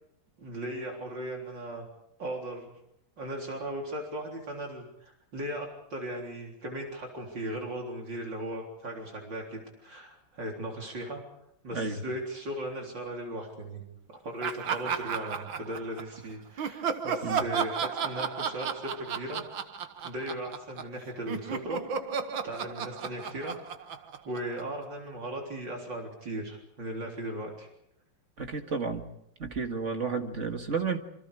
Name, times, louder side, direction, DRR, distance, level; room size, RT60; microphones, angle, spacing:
voice 1, 0.4-1.8 2.2-2.7 3.2-11.2 11.6-13.8 14.1-19.4 20.0-21.8 22.4-23.9 24.3-27.7, right 1 dB, 70° right, 0 dB, 4.4 m, -37 dB
Laughter, 14.4-16.2 16.6-21.0 21.3-24.9, right 7 dB, 90° right, 2.1 m, -33 dB
voice 2, 28.4-29.0 29.4-31.0, right 5 dB, 40° right, 5 dB, 2.1 m, -31 dB
27.5 x 25.0 x 5.0 m, 0.75 s
omnidirectional pair, 2.1 m